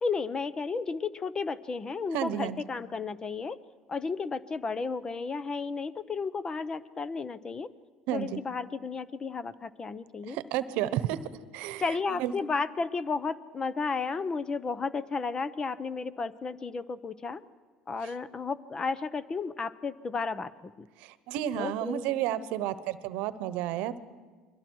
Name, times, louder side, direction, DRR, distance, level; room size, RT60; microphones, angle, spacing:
voice 1, 0.0-3.6 3.9-7.7 8.1-10.4 11.8-17.4 17.9-20.5 21.6-22.1, left 4 dB, 30° left, 16 dB, 0.8 m, -33 dB
voice 2, 2.1-2.6 8.1-8.4 10.2-11.2 11.5-12.3 18.0-18.1 21.0-24.0, right 12 dB, 70° right, 15 dB, 1.0 m, -32 dB
29.5 x 22.5 x 4.7 m, 1.4 s
hypercardioid pair, 80°, 2 cm